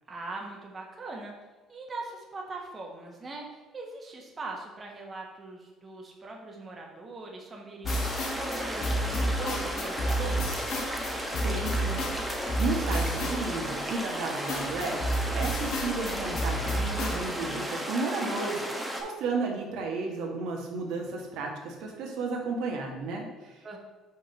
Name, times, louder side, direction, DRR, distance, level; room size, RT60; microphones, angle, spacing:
voice 1, 0.1-1.3 1.7-10.7 23.6-23.8, right 3 dB, 25° right, -1 dB, 1.2 m, -41 dB
sound 1, 7.8-13.9 14.5-17.2, equal, 65° left, 1.2 m, -31 dB
sound 2, 7.9-19.0, equal, 5° right, 1.0 m, -34 dB
voice 2, 11.4-18.6 19.0-23.8, right 3 dB, 75° right, 0 dB, 1.3 m, -33 dB
5.6 x 3.7 x 5.6 m, 1.2 s
cardioid pair, 115°, 0 cm